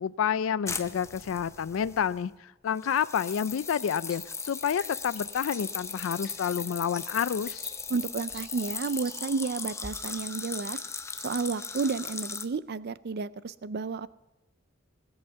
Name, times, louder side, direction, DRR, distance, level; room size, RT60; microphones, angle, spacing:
voice 1, 0.0-7.7, left 8 dB, 75° left, 16 dB, 0.4 m, -29 dB
sound 1, 0.7-2.3 2.8-12.5, left 5 dB, 15° left, 0.7 m, -38 dB
sound 2, 3.7-9.4, left 1 dB, 5° right, 3.2 m, -49 dB
voice 2, 7.9-10.8 11.2-14.1, right 4 dB, 55° right, 17 dB, 0.4 m, -31 dB
19.5 x 8.0 x 6.9 m, 1.1 s
head